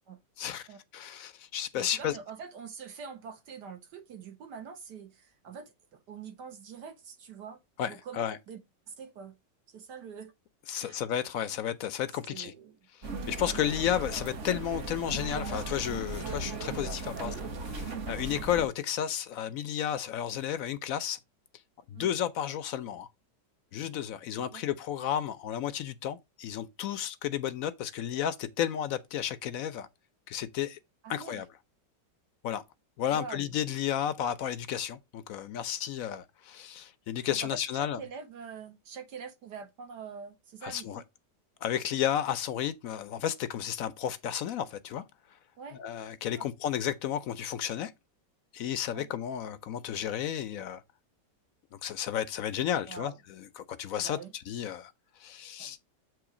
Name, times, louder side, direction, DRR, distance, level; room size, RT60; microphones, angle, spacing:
voice 1, 0.4-0.7 0.9-2.2 7.8-8.4 10.7-12.5 13.0-17.3 18.1-21.2 21.9-23.1 23.7-29.9 30.3-30.8 31.1-31.4 32.4-32.6 33.0-38.0 40.6-41.0 41.6-45.0 45.8-47.9 48.5-50.8 51.8-53.1 53.6-54.2 54.5-54.9 55.2-55.8, left 10 dB, 70° left, 0.8 m, -32 dB
voice 2, 1.7-7.6 7.8-8.6 8.9-9.4 9.7-10.3 10.7-11.0 12.2-12.8 17.1-17.5 21.9-22.1 24.4-24.6 31.0-31.4 33.1-33.6 37.3-41.0 45.6-45.8 46.4-46.5 48.9-49.1 52.9-53.2 54.0-54.3 55.6-55.8, right 6 dB, 70° right, 1.8 m, -45 dB
sound 1, 13.0-18.7, right 3 dB, 50° right, 1.2 m, -37 dB
7.8 x 3.1 x 4.8 m
omnidirectional pair, 1.9 m